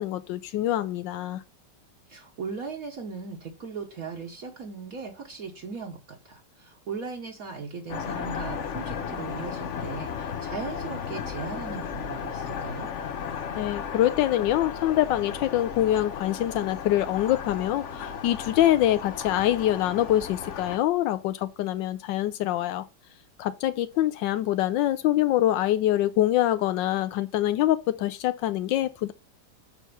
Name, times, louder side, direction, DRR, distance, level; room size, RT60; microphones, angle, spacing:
voice 1, 0.0-1.4 13.6-22.9 23.4-29.1, left 13 dB, 85° left, 1.3 m, -25 dB
voice 2, 2.1-12.9, right 5 dB, 55° right, 1.5 m, -38 dB
sound 1, 7.9-20.8, left 7 dB, 55° left, 0.9 m, -35 dB
6.9 x 4.6 x 6.7 m
omnidirectional pair, 1.9 m